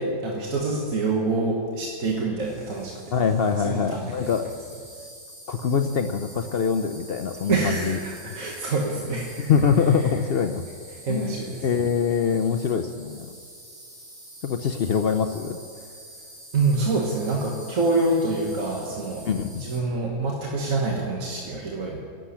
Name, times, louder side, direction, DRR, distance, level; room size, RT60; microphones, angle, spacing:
voice 1, 0.0-3.0 3.6-4.3 7.5-9.5 11.0-11.8 16.5-19.2 19.6-22.0, right 3 dB, 60° right, -2 dB, 1.7 m, -26 dB
Insect, 2.4-19.8, right 1 dB, 85° right, 4.3 m, -46 dB
voice 2, 3.1-4.5 5.5-8.0 8.3-8.4 9.5-10.6 11.1-11.4 11.6-13.3 14.4-15.6 19.2-19.6, left 6 dB, 65° left, 7 dB, 0.6 m, -24 dB
12.0 x 7.8 x 9.9 m, 2.2 s
omnidirectional pair, 1.6 m